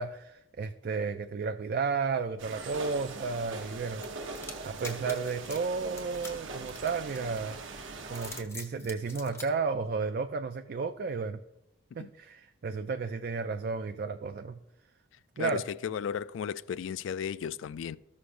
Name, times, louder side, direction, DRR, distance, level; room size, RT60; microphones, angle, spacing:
voice 1, 0.0-4.2 4.6-7.6 8.1-11.4 11.9-14.6 15.4-15.6, right 4 dB, 45° right, 0.3 m, -33 dB
sound 1, 2.4-8.4, right 3 dB, 65° right, 0.8 m, -41 dB
sound 2, 4.0-7.5 8.0-9.5, left 2 dB, 15° left, 0.8 m, -44 dB
voice 2, 15.4-18.0, left 7 dB, 65° left, 0.3 m, -34 dB
14.0 x 6.4 x 2.6 m
head